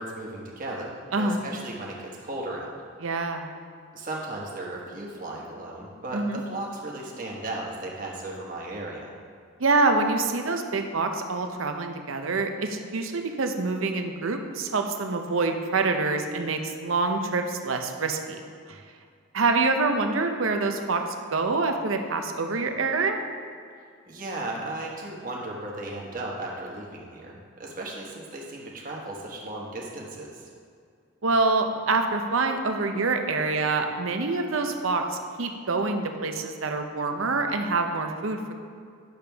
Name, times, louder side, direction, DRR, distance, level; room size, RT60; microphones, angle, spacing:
voice 1, 0.0-2.7 3.9-9.1 24.1-30.5, right 2 dB, 40° right, -2 dB, 1.3 m, -36 dB
voice 2, 3.0-3.5 6.1-6.4 9.6-18.4 18.7-18.8 19.3-21.0 21.3-23.2 31.2-38.5, right 3 dB, 75° right, 5 dB, 0.7 m, -26 dB
10.5 x 6.8 x 3.5 m, 2.2 s
head